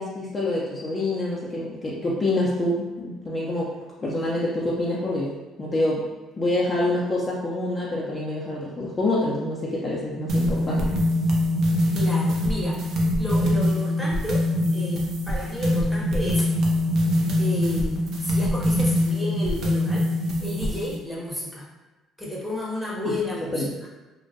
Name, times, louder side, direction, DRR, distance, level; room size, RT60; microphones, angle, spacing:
voice 1, 0.0-3.7 4.0-5.3 5.6-6.1 6.4-10.9 23.1-23.2 23.5-23.7, left 1 dB, 30° left, -5 dB, 0.5 m, -26 dB
sound 1, 10.3-21.0, left 1 dB, 60° right, 0.5 m, -23 dB
voice 2, 11.9-12.8 13.1-14.4 14.7-16.4 17.4-20.1 20.4-21.7 22.2-23.6, left 1 dB, 5° right, -5 dB, 0.9 m, -32 dB
2.1 x 2.1 x 2.7 m, 1.1 s
hypercardioid pair, 60°, 0 cm